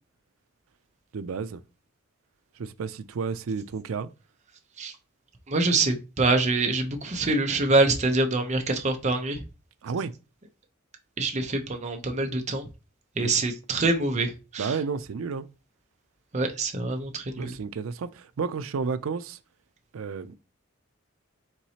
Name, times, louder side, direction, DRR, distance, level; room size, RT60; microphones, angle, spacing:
voice 1, 1.1-1.6 2.6-4.1 9.8-10.1 13.2-13.3 14.6-15.5 17.4-19.4 19.9-20.4, right 5 dB, 90° right, 0.4 m, -31 dB
voice 2, 5.5-9.4 11.2-12.6 13.2-14.7 16.3-17.5, right 3 dB, 35° right, 0.7 m, -25 dB
4.6 x 3.9 x 2.8 m
head